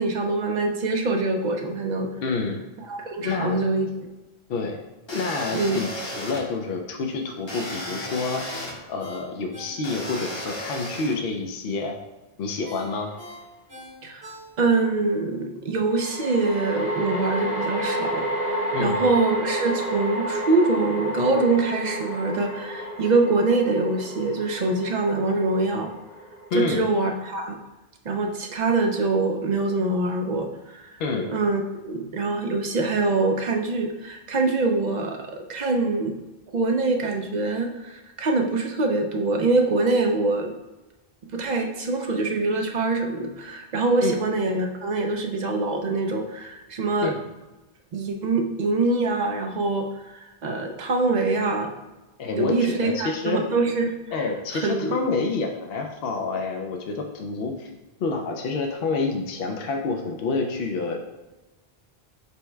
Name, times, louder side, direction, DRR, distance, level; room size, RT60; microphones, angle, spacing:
voice 1, 0.0-2.1 2.9-3.9 5.5-5.8 14.0-14.3 14.6-25.9 26.5-27.6 28.0-31.0 31.3-36.2 36.5-40.5 41.3-47.1 47.9-51.7 52.4-53.9 54.5-55.0, right 3 dB, 55° right, 3 dB, 0.5 m, -24 dB
voice 2, 2.2-2.6 3.2-3.6 4.5-4.8 5.1-8.4 8.9-12.0 12.4-13.1 18.7-19.0 26.5-26.8 31.0-31.3 44.0-44.2 47.0-47.2 52.2-53.4 54.1-57.7 58.0-61.0, left 3 dB, 70° left, 3 dB, 0.7 m, -28 dB
sound 1, 5.1-6.4 7.5-8.7 9.8-11.1, left 1 dB, 30° left, 0.7 m, -34 dB
Ringtone, 8.5-10.7 11.1-11.2 12.6-14.9 15.3-15.4, equal, 80° right, 1.9 m, -43 dB
sound 2, 12.9-13.1 15.9-27.3, right 1 dB, 5° right, 0.9 m, -30 dB
5.4 x 2.1 x 4.4 m, 1.1 s
omnidirectional pair, 1.0 m